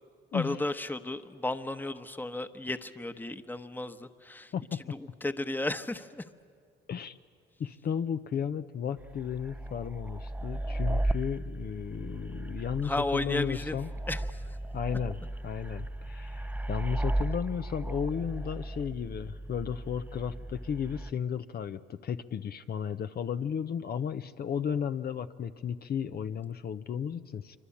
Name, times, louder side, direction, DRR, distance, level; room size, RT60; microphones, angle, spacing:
voice 1, 0.3-4.5 4.9-6.3 12.8-13.8 14.1-14.6, left 2 dB, 10° left, 10 dB, 1.1 m, -34 dB
voice 2, 4.5-4.9 6.9-7.2 7.6-13.9 14.7-27.6, left 8 dB, 50° left, 9 dB, 0.7 m, -34 dB
sound 1, 9.0-21.1, right 1 dB, 10° right, 0.6 m, -35 dB
26.5 x 24.5 x 8.6 m, 2.3 s
cardioid pair, 90°, 20 cm